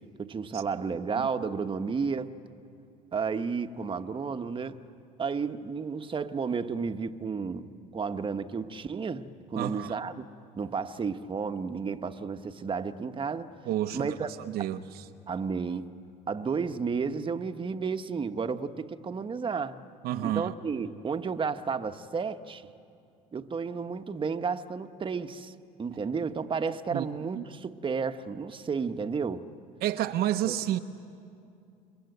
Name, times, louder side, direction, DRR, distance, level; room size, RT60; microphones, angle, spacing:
voice 1, 0.2-2.3 3.1-4.8 5.2-10.2 10.5-13.5 13.9-14.3 14.6-14.7 15.3-16.0 16.3-19.8 20.2-22.7 23.3-25.5 25.8-29.4 30.5-30.6, right 5 dB, 30° right, 1.2 m, -32 dB
voice 2, 9.6-10.0 13.7-15.0 20.0-20.5 26.9-27.1 27.3-27.4 29.8-30.8, right 12 dB, 65° right, 1.0 m, -30 dB
29.0 x 22.5 x 8.0 m
supercardioid pair, 80°, 17 cm